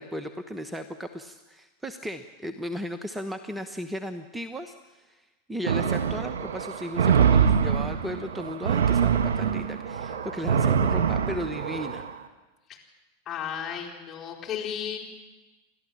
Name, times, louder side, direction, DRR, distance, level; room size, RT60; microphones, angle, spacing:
voice 1, 0.0-12.1, equal, 5° right, 8 dB, 1.1 m, -36 dB
sound 1, 5.7-12.1, right 7 dB, 65° right, 1.7 m, -24 dB
voice 2, 13.3-15.0, left 8 dB, 35° left, 0 dB, 4.6 m, -34 dB
30.0 x 13.0 x 7.3 m, 1.2 s
figure-of-eight pair, 90°, 0 cm